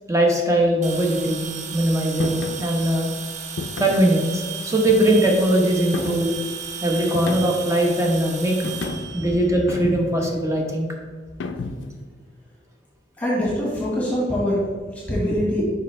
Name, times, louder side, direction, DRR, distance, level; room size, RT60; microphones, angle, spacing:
voice 1, 0.1-3.1 3.8-6.3 6.8-8.6 9.1-10.9 15.6-15.7, right 1 dB, 15° right, 0 dB, 1.0 m, -20 dB
sound 1, 0.8-10.1, right 6 dB, 40° right, 0.6 m, -35 dB
sound 2, 2.2-2.6 3.6-4.1 4.9-5.4 5.9-6.4 7.1-7.7 8.6-9.2 9.7-10.3 11.4-12.0, left 3 dB, 80° left, 0.5 m, -31 dB
voice 2, 13.2-14.6 15.1-15.6, equal, 10° left, -6 dB, 1.6 m, -23 dB
7.0 x 5.4 x 3.3 m, 1.6 s
head